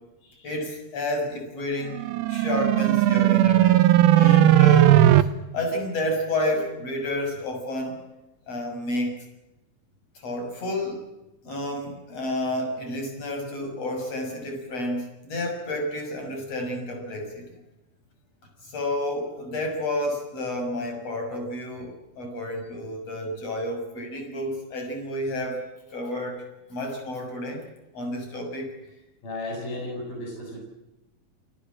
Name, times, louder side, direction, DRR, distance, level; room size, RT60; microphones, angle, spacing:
voice 1, 0.4-2.0 2.3-3.8 4.1-8.0 8.5-9.2 10.2-11.0 11.4-17.5 18.6-25.7 25.9-26.4 26.7-27.7 27.9-28.7, left 1 dB, 40° left, 3 dB, 7.4 m, -30 dB
sound 1, 1.9-5.2, right 13 dB, 80° right, 2.8 m, -17 dB
voice 2, 29.2-30.6, left 2 dB, 70° left, 0 dB, 9.1 m, -35 dB
29.0 x 19.5 x 7.6 m, 0.99 s
omnidirectional pair, 4.2 m